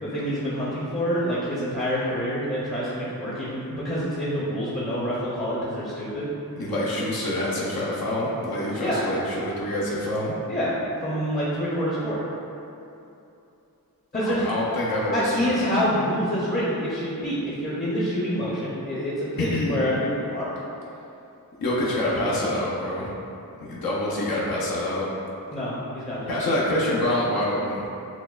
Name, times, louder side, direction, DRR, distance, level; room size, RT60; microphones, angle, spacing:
voice 1, 0.0-6.3 8.8-9.1 10.5-12.2 14.1-14.4 15.1-20.6 25.5-26.3, equal, 25° left, -8 dB, 0.6 m, -27 dB
voice 2, 6.6-10.3 14.3-15.8 19.4-19.8 21.6-23.1 23.7-25.1 26.3-27.9, left 1 dB, 75° left, -6 dB, 0.7 m, -26 dB
5.9 x 2.2 x 2.3 m, 2.8 s
wide cardioid pair, 115°, 36 cm